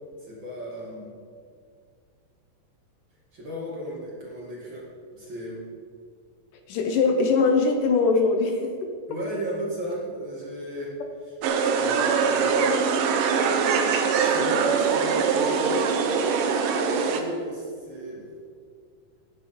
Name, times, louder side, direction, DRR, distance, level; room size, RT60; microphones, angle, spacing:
voice 1, 0.2-1.1 3.3-4.9 5.1-5.6 9.1-10.9 11.2-11.3 11.7-12.8 14.1-16.2 17.0-18.3, equal, 40° right, -4 dB, 2.3 m, -35 dB
voice 2, 6.7-8.9, left 4 dB, 70° left, 4 dB, 2.3 m, -22 dB
sound 1, 11.4-17.2, right 5 dB, 70° right, 2.5 m, -23 dB
17.0 x 9.7 x 4.3 m, 2.2 s
omnidirectional pair, 4.2 m